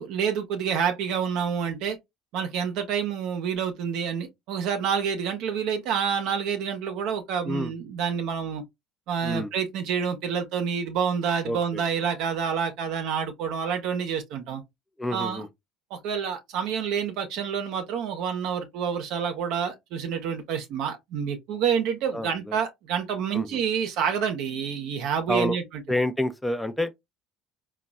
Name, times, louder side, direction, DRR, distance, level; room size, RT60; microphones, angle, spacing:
voice 1, 0.0-2.0 2.3-8.6 9.1-14.6 15.1-15.4 15.9-25.8, right 7 dB, 70° right, 0.7 m, -28 dB
voice 2, 11.4-11.8 15.0-15.5 22.1-22.5 23.3-23.6 25.3-25.6 25.9-26.9, left 1 dB, 5° left, 0.5 m, -28 dB
3.8 x 2.3 x 2.2 m
supercardioid pair, 80°, 0 cm